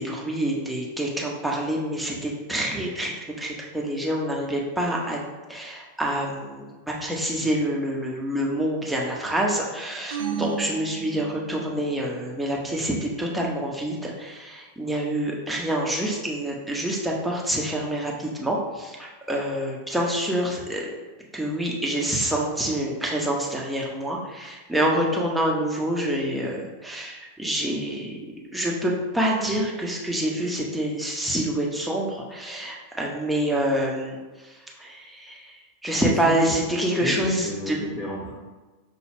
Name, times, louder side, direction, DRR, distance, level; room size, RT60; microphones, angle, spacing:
voice 1, 0.0-20.9 21.3-28.2 28.5-35.5 35.8-37.8, right 1 dB, 5° right, -2 dB, 0.7 m, -27 dB
sound 1, 10.1-11.8, right 7 dB, 60° right, 0.4 m, -33 dB
voice 2, 35.9-36.6 37.0-38.3, left 1 dB, 15° left, -4 dB, 1.0 m, -33 dB
5.3 x 2.3 x 3.4 m, 1.3 s
figure-of-eight pair, 90°, 0 cm